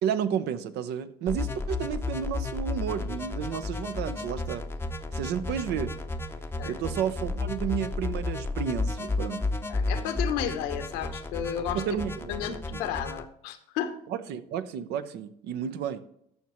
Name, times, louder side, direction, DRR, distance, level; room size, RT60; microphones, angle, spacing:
voice 1, 0.0-4.6 5.1-6.0 6.7-9.5 11.7-12.8 14.1-16.1, right 8 dB, 65° right, 12 dB, 0.8 m, -32 dB
sound 1, 1.3-13.2, left 3 dB, 15° left, 0.7 m, -32 dB
voice 2, 9.7-11.8 12.3-14.0, left 9 dB, 75° left, 8 dB, 1.0 m, -33 dB
14.0 x 5.8 x 3.1 m, 0.73 s
supercardioid pair, 85°, 18 cm